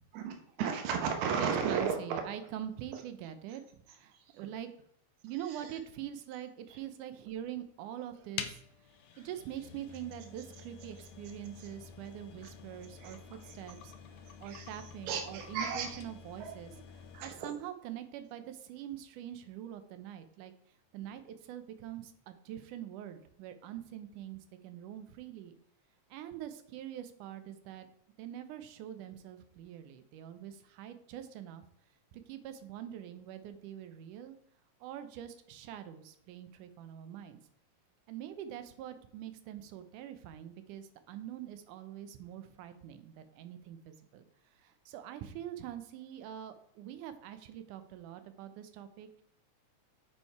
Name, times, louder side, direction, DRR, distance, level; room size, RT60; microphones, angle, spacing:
voice 1, 0.1-2.0 13.0-13.1 14.4-14.7 15.1-16.0 16.4-16.5 17.1-17.5, right 6 dB, 70° right, 4 dB, 2.3 m, -34 dB
voice 2, 1.3-4.7 5.2-8.9 9.2-20.5 20.9-25.6 26.1-27.9 28.2-31.7 32.1-34.4 34.8-37.4 38.1-44.2 44.6-49.2, right 11 dB, 90° right, 10 dB, 2.3 m, -44 dB
sound 1, 8.4-17.5, left 8 dB, 75° left, 1.8 m, -48 dB
8.8 x 4.5 x 4.6 m, 0.70 s
omnidirectional pair, 3.5 m